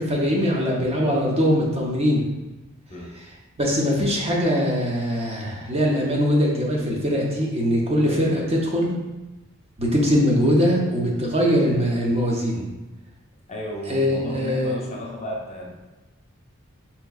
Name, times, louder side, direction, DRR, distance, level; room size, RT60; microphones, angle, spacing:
voice 1, 0.0-2.2 3.6-8.9 9.8-12.6 13.9-14.8, equal, 30° right, -2 dB, 0.6 m, -21 dB
voice 2, 8.0-8.4 13.5-15.7, left 1 dB, 35° left, -2 dB, 0.6 m, -34 dB
4.4 x 2.9 x 2.3 m, 1.1 s
head